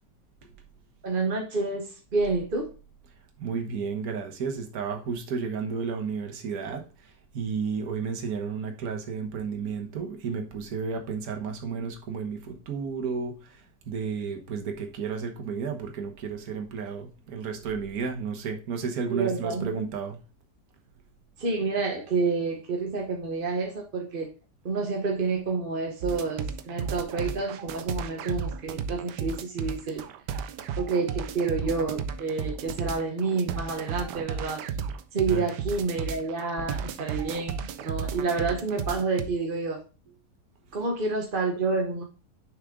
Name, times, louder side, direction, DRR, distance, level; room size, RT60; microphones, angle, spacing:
voice 1, 1.0-1.9 2.1-2.7 19.1-19.9 21.4-24.3 24.6-30.0 30.8-34.6 35.1-39.8 40.7-42.0, right 4 dB, 40° right, 1 dB, 1.0 m, -29 dB
voice 2, 3.4-20.2 35.3-35.5, right 5 dB, 60° right, 4 dB, 1.6 m, -32 dB
sound 1, 26.0-39.3, right 6 dB, 80° right, 1.3 m, -34 dB
6.4 x 5.0 x 3.6 m, 0.34 s
omnidirectional pair, 1.8 m